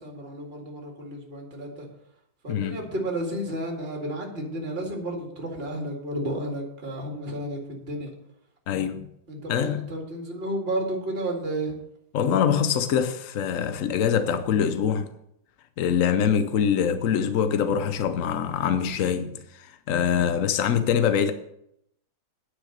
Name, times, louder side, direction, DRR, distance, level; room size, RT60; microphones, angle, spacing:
voice 1, 0.0-1.9 2.4-8.1 9.3-11.8, right 1 dB, 30° right, 2.3 m, -32 dB
voice 2, 8.7-9.1 9.5-9.8 12.1-15.1 15.8-21.3, left 8 dB, 75° left, 0.7 m, -24 dB
10.0 x 6.5 x 6.6 m
omnidirectional pair, 2.2 m